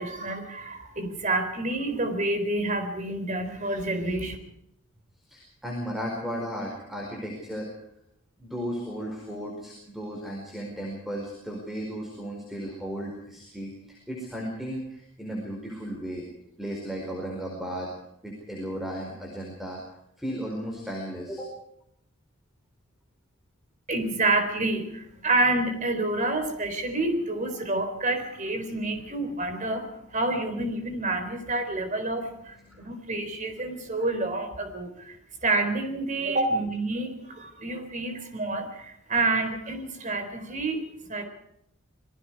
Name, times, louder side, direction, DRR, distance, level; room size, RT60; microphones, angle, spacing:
voice 1, 0.0-4.4 23.9-40.8 41.1-41.3, right 2 dB, 35° right, 7 dB, 4.0 m, -28 dB
voice 2, 5.3-7.7 8.4-16.2 16.6-17.9 18.2-19.8 20.2-21.5 32.7-32.9 34.0-34.1, equal, ahead, -1 dB, 4.8 m, -35 dB
27.0 x 22.0 x 4.8 m, 0.76 s
head